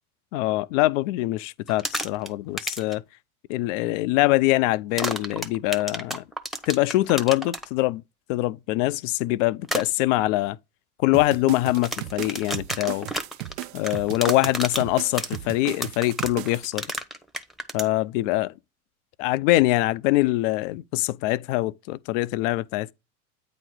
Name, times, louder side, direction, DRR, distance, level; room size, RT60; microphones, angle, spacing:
voice 1, 0.3-3.0 3.5-6.2 6.7-8.0 8.3-10.6 11.0-13.1 13.7-16.9 17.7-18.5 19.2-22.9, left 18 dB, 60° left, 0.5 m, -23 dB
sound 1, 1.7-2.3 2.6-2.9 5.0-7.7 9.6-9.8 11.7-17.9, equal, ahead, 0.8 m, -30 dB
sound 2, 11.1-16.7, right 15 dB, 60° right, 0.6 m, -36 dB
8.9 x 3.0 x 6.0 m
hypercardioid pair, 90°, 45 cm